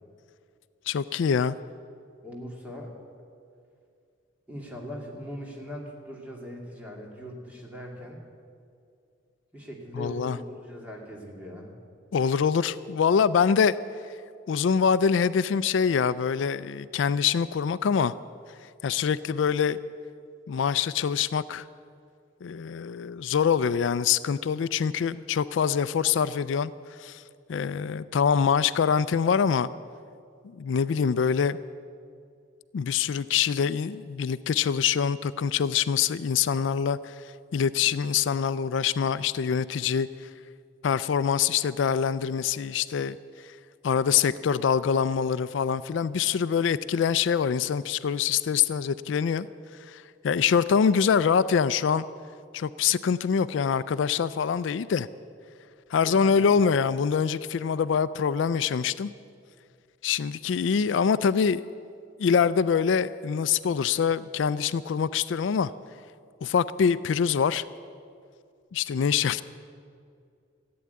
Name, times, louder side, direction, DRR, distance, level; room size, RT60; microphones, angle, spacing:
voice 1, 0.9-1.6 10.0-10.4 12.1-13.7 14.5-18.1 18.8-19.8 20.5-21.7 22.4-26.7 27.0-27.2 27.5-29.7 30.5-31.6 32.7-37.2 37.5-40.1 40.8-43.2 43.4-43.5 43.8-49.5 49.9-52.1 52.5-55.1 55.9-59.1 60.0-61.6 62.2-65.7 66.4-67.6 68.7-69.4, left 7 dB, 75° left, 16 dB, 0.4 m, -24 dB
voice 2, 2.2-2.9 4.5-8.2 9.5-11.7 56.0-56.6, equal, 10° right, -2 dB, 2.2 m, -40 dB
14.5 x 8.7 x 9.4 m, 2.3 s
head